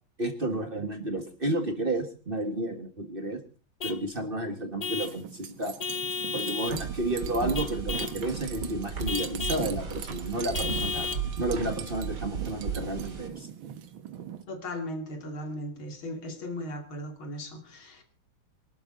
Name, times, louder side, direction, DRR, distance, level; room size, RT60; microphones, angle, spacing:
voice 1, 0.2-3.4 3.8-5.7 6.3-11.1 11.4-13.5, right 1 dB, 30° right, 7 dB, 1.6 m, -31 dB
Vehicle horn car horn honking / Truck, 3.8-4.1 4.8-5.2 5.8-6.8 7.5-8.2 9.1-9.7 10.5-11.3, left 5 dB, 40° left, 0.6 m, -33 dB
sound 1, 5.0-14.4, right 9 dB, 75° right, 2.0 m, -41 dB
sound 2, 6.7-13.3, right 5 dB, 55° right, 2.9 m, -35 dB
voice 2, 14.5-18.0, left 1 dB, 80° left, 6 dB, 3.4 m, -37 dB
23.5 x 12.5 x 3.8 m, 0.34 s
omnidirectional pair, 2.2 m